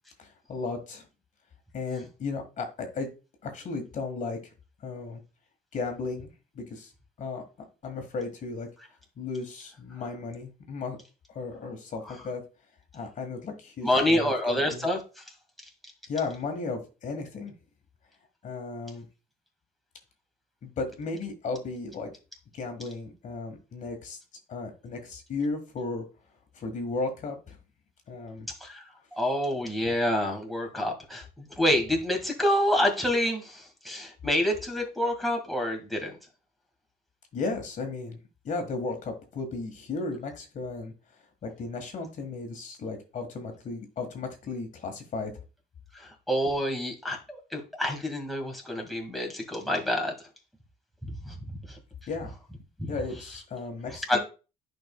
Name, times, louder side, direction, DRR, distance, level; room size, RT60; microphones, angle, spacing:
voice 1, 0.2-1.1 1.7-3.1 3.4-4.5 4.8-5.2 5.7-6.3 6.5-6.9 7.2-7.4 7.8-8.7 9.2-11.0 11.3-12.4 12.9-14.9 16.1-17.5 18.4-19.1 20.6-22.1 22.5-24.2 24.5-26.0 26.5-27.6 28.1-28.5 37.3-38.2 38.4-40.9 41.4-45.3 52.1-52.3 52.9-54.2, left 3 dB, 50° left, 5 dB, 1.7 m, -35 dB
voice 2, 13.8-15.0 28.6-28.8 29.2-36.1 45.9-50.1 51.0-51.3 52.8-52.9 54.1-54.2, left 1 dB, ahead, 1 dB, 1.9 m, -27 dB
10.5 x 5.3 x 2.3 m, 0.32 s
cardioid pair, 110°, 17 cm